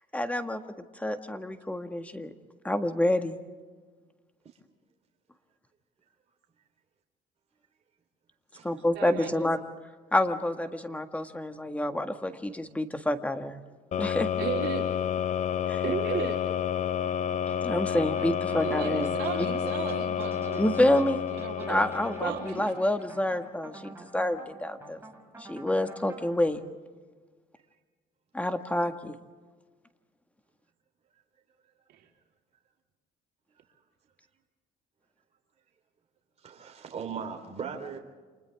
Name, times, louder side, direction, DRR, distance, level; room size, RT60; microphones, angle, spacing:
voice 1, 0.1-0.6 1.0-2.3 2.6-3.4 8.6-9.6 10.1-13.6 14.0-14.3 15.7-15.8 17.6-19.1 19.5-19.6 20.6-21.3 21.7-25.0 25.4-26.6 28.3-29.1, left 1 dB, 10° left, 1.7 m, -28 dB
voice 2, 8.9-9.4 14.4-14.8 15.8-16.6 18.6-20.6 21.3-21.8 22.2-22.7, right 9 dB, 80° right, 4.0 m, -34 dB
sound 1, 13.9-22.8, left 9 dB, 45° left, 0.7 m, -30 dB
sound 2, 17.9-26.5, right 2 dB, 15° right, 6.3 m, -49 dB
voice 3, 36.4-38.0, right 6 dB, 40° right, 3.9 m, -38 dB
30.0 x 27.5 x 3.6 m
cardioid pair, 110°, 17 cm